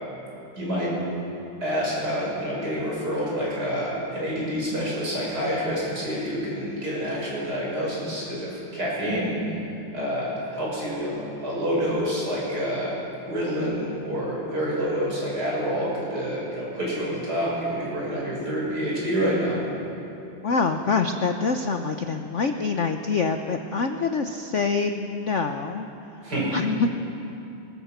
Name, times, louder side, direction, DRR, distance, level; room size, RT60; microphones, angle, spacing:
voice 1, 0.6-1.0 1.6-9.3 9.9-12.9 13.3-19.6 26.2-26.5, equal, 50° right, -5 dB, 7.3 m, -27 dB
voice 2, 20.4-25.9 26.5-26.9, left 4 dB, 50° left, 5 dB, 0.9 m, -25 dB
22.0 x 21.5 x 6.7 m, 2.9 s
omnidirectional pair, 2.2 m